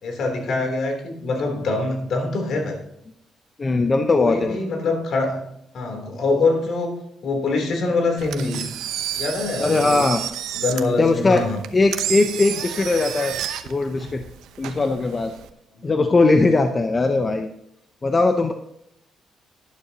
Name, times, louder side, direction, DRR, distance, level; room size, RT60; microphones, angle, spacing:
voice 1, 0.0-2.8 4.2-5.4 5.7-8.7 9.2-10.0 10.5-11.6 15.8-15.9, left 3 dB, 65° left, 3 dB, 3.4 m, -24 dB
voice 2, 3.6-4.6 9.6-10.2 11.0-11.4 11.7-13.4 13.6-14.2 14.6-15.3 15.8-17.5 18.0-18.5, left 3 dB, 30° left, 6 dB, 0.9 m, -19 dB
Engine, 8.2-15.5, right 10 dB, 85° right, 0.9 m, -31 dB
12.0 x 11.5 x 2.9 m, 0.77 s
cardioid pair, 90°, 0 cm